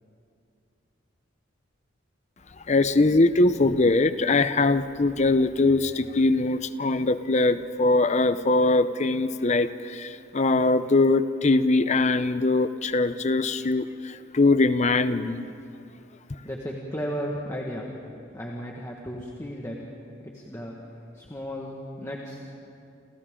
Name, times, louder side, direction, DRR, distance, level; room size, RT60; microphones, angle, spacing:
voice 1, 2.7-15.4, left 2 dB, 35° left, 12 dB, 0.7 m, -22 dB
voice 2, 16.4-17.9 18.3-19.8 20.3-20.7 21.1-22.4, equal, 15° left, -2 dB, 1.7 m, -34 dB
29.0 x 29.0 x 3.8 m, 2.6 s
head